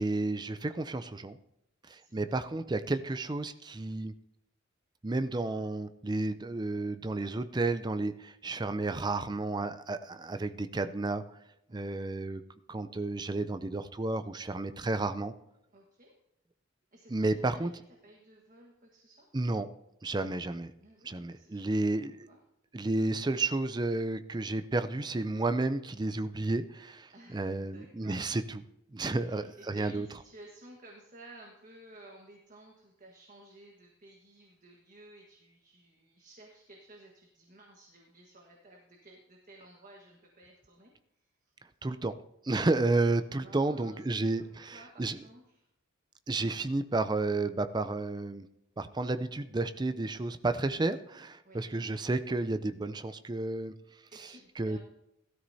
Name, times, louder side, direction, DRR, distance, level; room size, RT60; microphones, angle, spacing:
voice 1, 0.0-1.4 1.9-4.1 5.0-11.2 11.7-12.4 12.7-15.3 17.1-17.7 19.3-19.7 20.0-20.7 21.0-22.3 22.7-28.6 28.9-30.1 41.8-42.1 42.4-45.2 46.3-48.5 48.8-53.7 54.6-54.8, right 2 dB, 20° right, 10 dB, 0.4 m, -31 dB
voice 2, 1.9-2.4 11.7-12.0 15.7-16.2 16.9-19.3 20.8-22.4 27.1-28.2 29.0-41.5 43.0-44.0 44.3-45.7 51.4-51.7 54.1-54.8, right 1 dB, 40° right, 0 dB, 1.5 m, -55 dB
17.0 x 13.0 x 2.8 m, 0.83 s
head